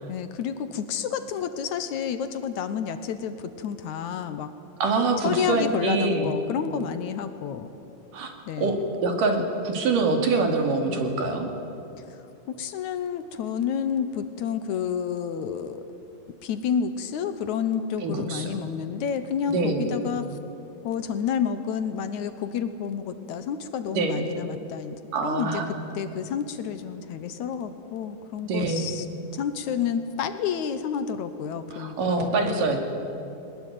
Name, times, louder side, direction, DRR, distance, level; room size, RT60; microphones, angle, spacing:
voice 1, 0.1-4.5 5.2-7.7 8.5-8.8 12.0-12.1 12.6-15.8 16.4-20.3 20.8-25.0 25.2-25.6 26.0-29.1 29.3-32.8, left 7 dB, 70° left, 10 dB, 2.2 m, -30 dB
voice 2, 4.8-6.3 8.1-8.3 8.6-8.8 9.0-11.5 18.0-18.6 19.5-19.9 23.9-24.3 25.1-25.8 28.4-28.9 31.7-32.8, right 3 dB, 75° right, 4 dB, 4.0 m, -25 dB
22.0 x 20.0 x 9.2 m, 2.9 s
omnidirectional pair, 3.8 m